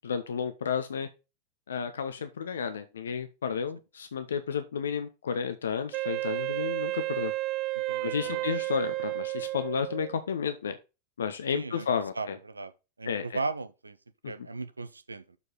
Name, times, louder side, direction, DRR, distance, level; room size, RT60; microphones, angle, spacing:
voice 1, 0.0-1.1 1.7-7.3 8.0-10.8 11.2-12.4 13.0-13.4 14.2-14.3, left 6 dB, 65° left, 0.7 m, -32 dB
Wind instrument woodwind instrument, 5.9-10.2, right 19 dB, 40° right, 0.5 m, -32 dB
voice 2, 7.9-8.4 11.5-11.9 12.2-12.7 13.0-14.0 14.3-15.4, right 3 dB, 80° right, 0.7 m, -36 dB
6.9 x 4.8 x 5.4 m
figure-of-eight pair, 90°, 0 cm